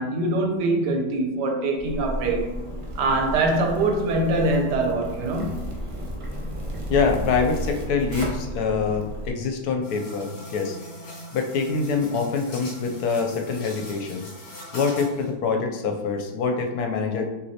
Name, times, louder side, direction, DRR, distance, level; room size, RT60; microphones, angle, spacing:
voice 1, 0.0-2.6 3.0-5.6, right 2 dB, 85° right, 2 dB, 1.4 m, -23 dB
Zipper (clothing), 1.8-9.3, equal, 60° right, 0.3 m, -33 dB
voice 2, 6.9-10.8 11.3-14.3 14.7-17.2, left 5 dB, 75° left, 4 dB, 1.1 m, -25 dB
sound 1, 9.8-15.3, equal, 45° left, 1.3 m, -41 dB
6.2 x 3.0 x 2.7 m, 1.1 s
omnidirectional pair, 1.8 m